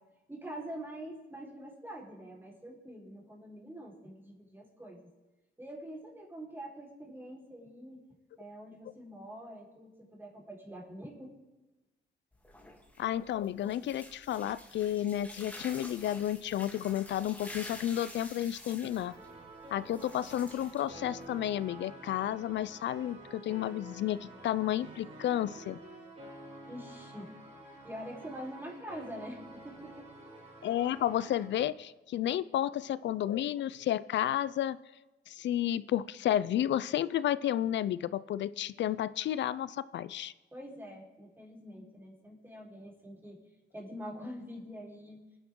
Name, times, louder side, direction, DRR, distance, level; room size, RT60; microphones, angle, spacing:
voice 1, 0.3-5.1 5.6-8.0 8.4-11.3 26.7-27.3 27.8-30.1 40.5-43.4 43.7-45.2, equal, 10° right, -2 dB, 4.6 m, -45 dB
sound 1, 12.3-21.5, left 1 dB, 10° left, 3.1 m, -49 dB
voice 2, 13.0-19.1 19.7-25.8 30.6-34.8 35.3-40.3, left 11 dB, 65° left, 18 dB, 0.6 m, -32 dB
sound 2, 18.9-31.6, right 1 dB, 35° right, 4.9 m, -49 dB
25.5 x 10.0 x 3.8 m, 1.1 s
cardioid pair, 90°, 20 cm